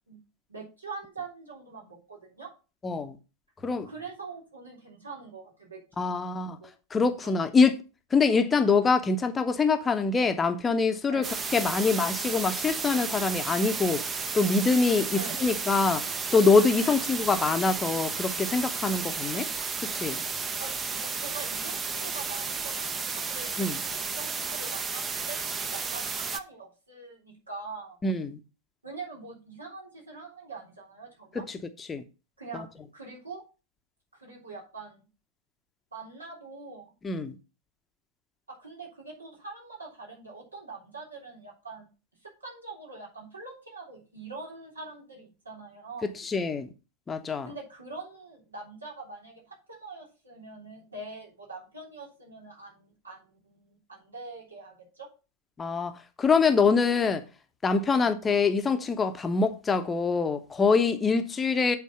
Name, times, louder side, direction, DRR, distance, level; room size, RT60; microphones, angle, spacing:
voice 1, 0.5-2.5 3.9-6.3 6.6-6.7 7.2-7.4 11.1-11.3 15.2-15.4 16.8-17.0 20.6-28.0 28.8-31.4 32.4-33.4 34.1-35.1 35.9-36.9 38.5-41.9 42.4-46.1 47.5-55.1 57.9-58.1, right 3 dB, 75° right, 3.4 m, -43 dB
voice 2, 2.8-3.2 3.6-3.9 6.0-6.6 6.9-7.8 8.1-11.3 11.5-14.0 14.3-16.0 16.3-19.5 19.9-20.2 23.6-23.8 28.0-28.4 31.5-31.6 31.9-32.0 37.0-37.4 46.0-46.7 47.1-47.5 55.6-55.9 56.2-57.2 57.6-61.8, left 4 dB, 15° left, 0.9 m, -24 dB
sound 1, 11.2-26.4, right 5 dB, 20° right, 0.7 m, -33 dB
8.3 x 4.2 x 5.6 m
figure-of-eight pair, 90°, 0 cm